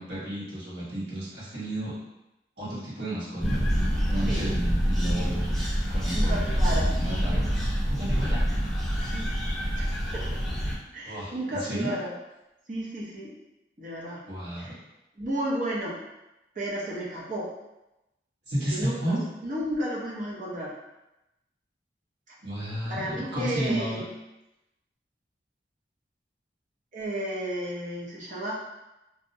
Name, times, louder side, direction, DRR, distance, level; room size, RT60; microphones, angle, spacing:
voice 1, 0.0-1.9 2.6-3.6 4.1-5.5 5.9-7.5 7.9-8.4 11.0-11.9 14.2-14.7 18.5-19.2 22.4-24.0, right 1 dB, 75° right, -9 dB, 1.2 m, -32 dB
sound 1, 3.4-10.8, equal, 5° left, 0.8 m, -26 dB
voice 2, 6.1-6.9 9.0-9.3 9.7-9.9 10.1-10.4 10.9-12.2 12.7-13.3 13.8-14.2 14.6-14.7 15.2-16.0 16.6-17.5 18.6-19.2 19.4-20.7 22.9-24.0 26.9-28.5, right 1 dB, 45° right, -6 dB, 0.5 m, -33 dB
2.6 x 2.0 x 2.6 m, 0.94 s
head